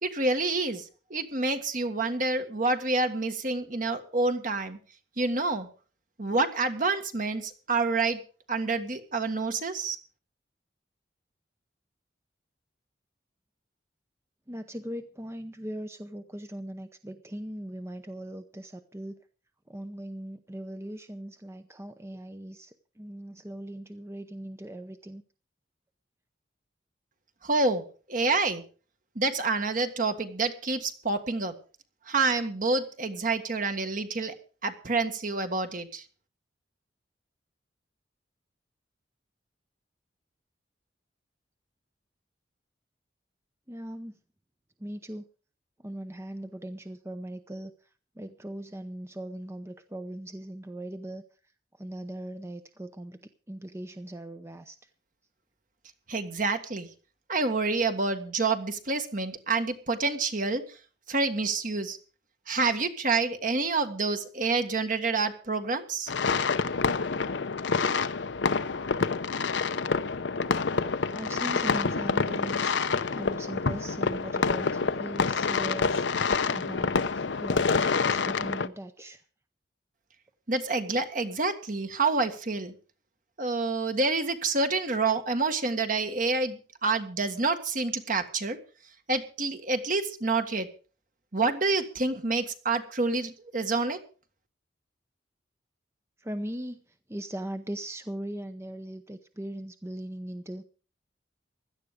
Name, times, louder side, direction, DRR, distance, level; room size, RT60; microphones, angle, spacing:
voice 1, 0.0-4.8 5.2-5.7 6.2-8.2 8.5-10.0 27.4-28.6 29.1-31.5 32.1-34.3 34.6-36.0 56.1-56.9 57.3-60.8 61.1-62.0 62.5-66.1 80.5-82.7 83.4-88.6 89.1-90.7 91.3-94.0, right 3 dB, 50° right, 7 dB, 1.7 m, -28 dB
voice 2, 14.5-19.2 19.7-25.2 43.7-44.2 44.8-45.2 45.8-47.9 48.2-51.2 51.8-54.9 71.1-72.7 73.1-79.2 96.2-100.6, right 1 dB, 15° right, 9 dB, 0.7 m, -39 dB
sound 1, 66.1-78.7, left 4 dB, 85° left, 0.8 m, -27 dB
16.5 x 12.0 x 5.0 m, 0.38 s
head